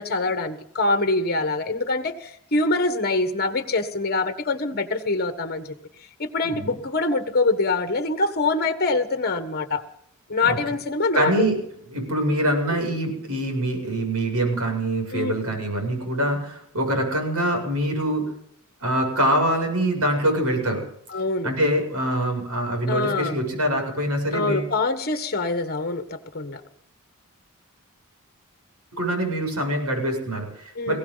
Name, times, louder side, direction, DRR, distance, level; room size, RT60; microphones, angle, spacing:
voice 1, 0.0-5.6 6.2-9.8 10.3-11.3 15.1-15.3 21.1-21.5 22.9-23.4 24.3-26.6 30.8-30.9, left 3 dB, 45° left, 9 dB, 1.4 m, -24 dB
voice 2, 11.1-11.5 11.9-18.3 18.8-20.8 21.4-24.7 28.9-31.0, right 1 dB, 85° right, 3 dB, 7.2 m, -24 dB
21.0 x 17.0 x 4.0 m, 0.70 s
head